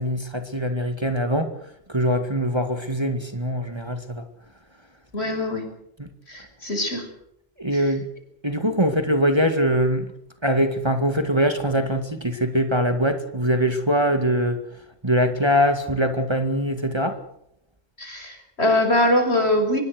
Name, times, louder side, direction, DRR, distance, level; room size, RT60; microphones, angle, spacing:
voice 1, 0.0-1.5 1.9-4.2 6.0-6.1 7.6-8.1 8.4-10.1 10.4-14.6 15.0-17.2, equal, 20° right, 6 dB, 2.2 m, -22 dB
voice 2, 5.1-5.7 6.3-7.1 7.7-7.9 18.0-19.8, left 1 dB, 60° left, 6 dB, 6.2 m, -22 dB
24.5 x 21.5 x 6.5 m, 0.75 s
omnidirectional pair, 1.2 m